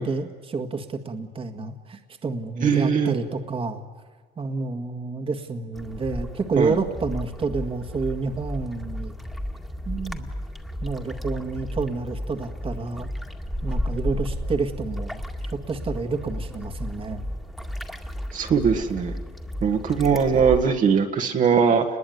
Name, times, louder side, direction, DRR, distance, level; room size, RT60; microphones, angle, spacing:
voice 1, 0.0-3.8 4.4-9.1 9.9-10.3 10.8-13.1 13.6-15.2 15.5-17.2, right 4 dB, 35° right, 6 dB, 1.9 m, -29 dB
voice 2, 2.6-3.1 6.6-6.8 18.3-19.1 19.6-21.9, right 6 dB, 50° right, 3 dB, 1.7 m, -20 dB
sound 1, 5.7-20.7, equal, ahead, 2.1 m, -33 dB
29.5 x 21.0 x 9.5 m, 1.5 s
cardioid pair, 110°, 17 cm